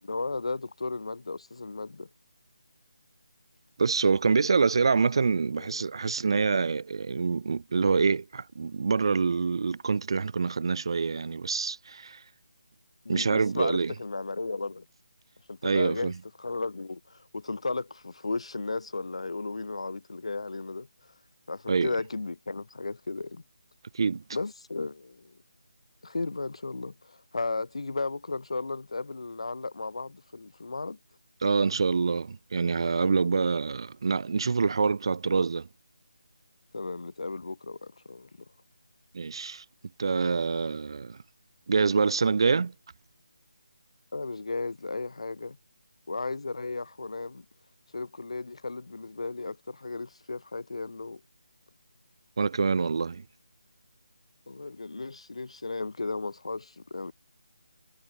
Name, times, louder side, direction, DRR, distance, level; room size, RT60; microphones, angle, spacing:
voice 1, 0.0-2.1 5.6-5.7 13.0-14.9 15.5-16.1 16.4-20.9 21.5-23.4 24.3-25.4 26.0-31.0 36.7-38.3 44.1-45.6 46.1-47.4 47.9-51.2 54.5-57.1, left 3 dB, 65° left, 1.2 m, -35 dB
voice 2, 3.8-12.2 13.1-13.9 15.6-16.1 21.7-21.9 23.9-24.2 31.4-35.7 39.1-39.6 40.0-41.2 41.7-42.7 52.4-53.2, right 5 dB, 50° right, 1.5 m, -26 dB
figure-of-eight pair, 160°, 3 cm